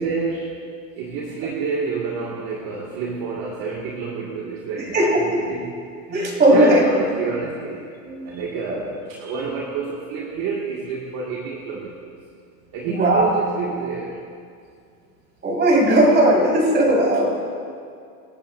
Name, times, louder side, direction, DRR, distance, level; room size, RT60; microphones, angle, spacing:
voice 1, 0.0-7.9 8.3-12.2 12.7-14.2, right 5 dB, 40° right, -3 dB, 2.1 m, -28 dB
voice 2, 4.8-5.3 6.1-6.8 8.0-8.4 8.7-8.9 9.2-9.4 12.8-13.3 15.4-17.4, right 1 dB, 20° right, -2 dB, 4.6 m, -18 dB
26.5 x 14.0 x 2.6 m, 2.3 s
hypercardioid pair, 120°, 49 cm